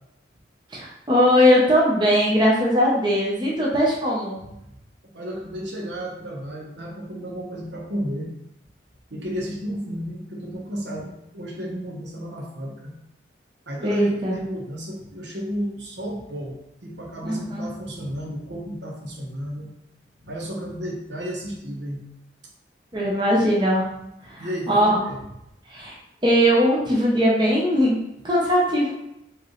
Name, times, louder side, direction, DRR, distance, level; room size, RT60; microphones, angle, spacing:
voice 1, 0.7-4.4 13.8-14.4 17.2-17.7 22.9-23.9 24.2-25.0 25.7-25.9 26.2-28.9, equal, 25° right, -4 dB, 0.7 m, -20 dB
voice 2, 5.1-8.3 9.1-12.9 13.7-16.6 16.8-19.7 20.2-22.1 24.4-25.2, equal, 70° right, -1 dB, 1.1 m, -32 dB
5.0 x 3.1 x 3.1 m, 0.82 s
head